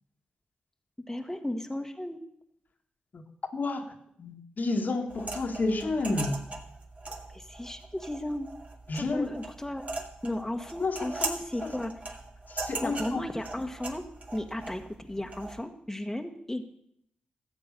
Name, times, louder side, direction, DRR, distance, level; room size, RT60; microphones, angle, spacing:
voice 1, 1.1-2.2 7.3-8.5 8.9-9.8 10.2-11.9 12.8-14.0 14.3-16.6, left 1 dB, 10° left, 4 dB, 1.4 m, -35 dB
voice 2, 3.5-3.9 4.2-6.4 8.9-9.3 10.8-11.3 11.6-11.7 12.5-13.3, left 3 dB, 55° left, 4 dB, 1.6 m, -30 dB
sound 1, 5.1-15.6, right 3 dB, 40° right, 2.2 m, -40 dB
13.0 x 7.7 x 6.7 m, 0.71 s
supercardioid pair, 45°, 4 cm